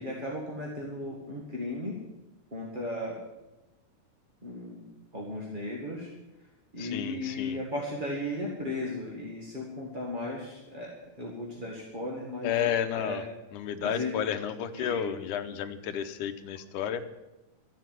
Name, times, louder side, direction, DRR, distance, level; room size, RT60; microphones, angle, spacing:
voice 1, 0.0-2.0 2.5-3.2 4.4-6.1 6.7-12.6 13.0-13.2 13.8-14.1 14.7-15.1, left 1 dB, 20° right, -3 dB, 1.5 m, -36 dB
voice 2, 6.8-7.6 12.4-13.2 13.5-17.1, left 9 dB, 85° left, 9 dB, 2.3 m, -31 dB
13.5 x 8.1 x 9.1 m, 1.0 s
omnidirectional pair, 3.5 m